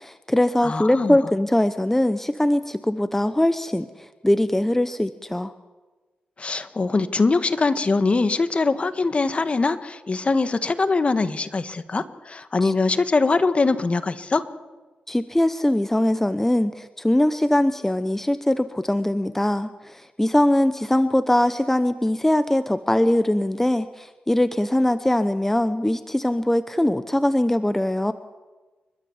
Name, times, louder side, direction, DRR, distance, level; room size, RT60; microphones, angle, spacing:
voice 1, 0.0-3.9 4.2-5.5 12.6-12.7 15.1-28.1, left 1 dB, 10° left, 11 dB, 0.9 m, -21 dB
voice 2, 0.6-1.2 6.4-14.4, left 3 dB, 40° left, 11 dB, 1.5 m, -22 dB
29.5 x 12.5 x 7.2 m, 1.3 s
cardioid pair, 60°, 3 cm